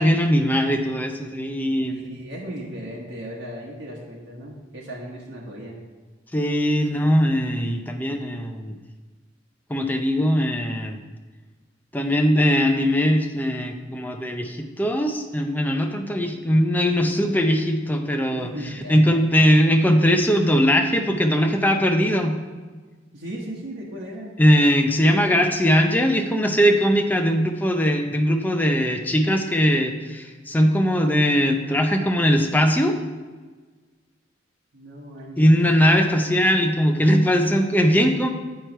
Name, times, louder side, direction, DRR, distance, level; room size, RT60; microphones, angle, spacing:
voice 1, 0.0-2.0 6.3-8.8 9.7-11.0 11.9-18.5 18.9-22.4 24.4-33.0 35.4-38.3, equal, 10° left, 4 dB, 0.5 m, -20 dB
voice 2, 1.8-5.8 18.3-19.2 23.1-24.4 34.7-35.6, equal, 85° right, -4 dB, 1.2 m, -36 dB
8.4 x 4.6 x 4.4 m, 1.4 s
head